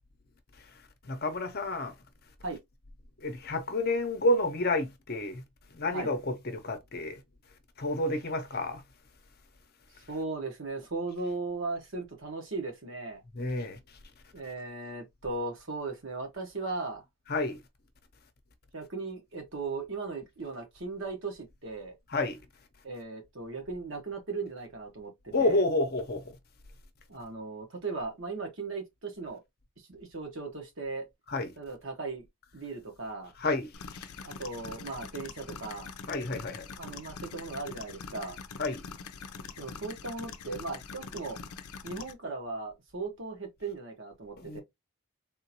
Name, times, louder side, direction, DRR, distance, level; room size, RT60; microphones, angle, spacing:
voice 1, 1.0-1.9 3.2-5.4 5.7-7.2 7.8-8.8 13.4-13.8 17.3-17.6 22.1-22.4 25.3-26.4 31.3-31.5 33.4-34.1 36.1-36.7 38.6-38.8 44.4-44.6, left 2 dB, 45° left, 0.7 m, -30 dB
voice 2, 10.1-13.2 14.3-17.0 18.7-21.9 22.8-25.6 27.1-29.4 29.9-31.1 31.6-32.2 32.5-33.3 34.2-35.9 36.7-38.4 39.6-41.4 41.8-44.6, right 3 dB, 55° right, 1.1 m, -37 dB
sound 1, 33.7-42.1, left 5 dB, 80° left, 0.5 m, -44 dB
3.6 x 2.5 x 2.8 m
head